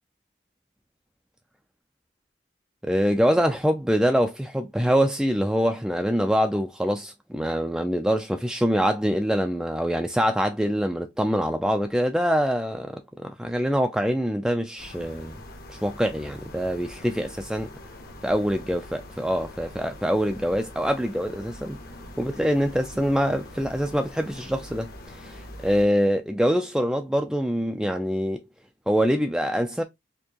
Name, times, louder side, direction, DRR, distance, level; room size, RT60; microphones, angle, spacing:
voice 1, 2.8-15.3 15.7-17.7 18.2-21.8 22.2-28.4 28.9-29.8, equal, 5° right, 0.3 m, -24 dB
sound 1, 14.8-25.9, left 1 dB, 50° left, 1.0 m, -43 dB
4.4 x 2.8 x 2.8 m
head